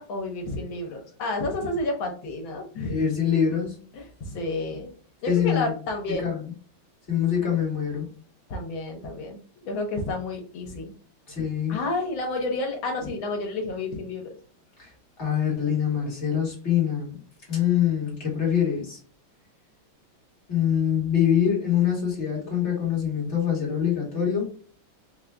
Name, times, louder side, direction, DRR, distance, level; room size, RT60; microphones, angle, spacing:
voice 1, 0.0-3.0 3.9-4.9 5.2-6.3 8.5-10.9 11.7-14.2, left 2 dB, 75° left, 2 dB, 1.8 m, -30 dB
voice 2, 2.9-3.7 5.3-5.7 6.2-6.5 7.1-8.1 11.3-11.7 14.8-14.9 15.2-17.2 17.5-19.0 20.5-24.4, left 8 dB, 40° left, -3 dB, 1.6 m, -24 dB
4.3 x 2.5 x 3.3 m, 0.43 s
omnidirectional pair, 2.2 m